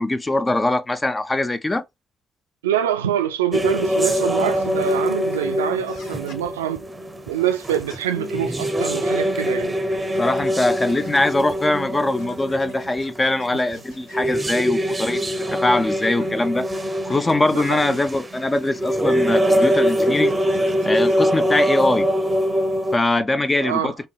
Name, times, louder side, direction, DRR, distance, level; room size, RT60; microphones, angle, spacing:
voice 1, 0.0-1.8 10.2-15.2 15.5-16.7 17.0-20.3 20.8-22.1 22.9-23.9, left 2 dB, 25° left, 0.5 m, -22 dB
voice 2, 2.6-6.8 7.3-9.7 17.5-18.0 23.6-23.9, right 10 dB, 85° right, 0.3 m, -25 dB
sound 1, 3.5-23.0, equal, 20° right, 0.7 m, -23 dB
sound 2, 5.9-6.4 7.4-8.0 9.0-11.8 12.1-15.4 16.0-17.3 18.0-21.4, left 2 dB, 75° left, 1.3 m, -49 dB
4.0 x 2.7 x 2.3 m
hypercardioid pair, 45°, 0 cm